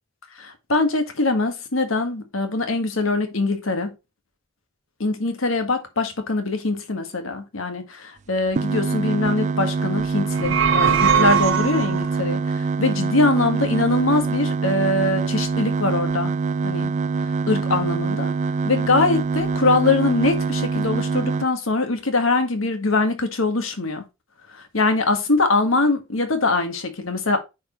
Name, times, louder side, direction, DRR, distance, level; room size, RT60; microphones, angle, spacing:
voice 1, 0.4-3.9 5.0-16.3 16.6-16.9 17.5-18.3 18.6-24.0 24.5-27.4, left 3 dB, 85° left, 1.7 m, -22 dB
sound 1, 8.5-21.4, right 4 dB, 35° right, 0.3 m, -24 dB
sound 2, 10.2-12.1, right 7 dB, 70° right, 1.0 m, -20 dB
9.2 x 4.8 x 3.1 m
head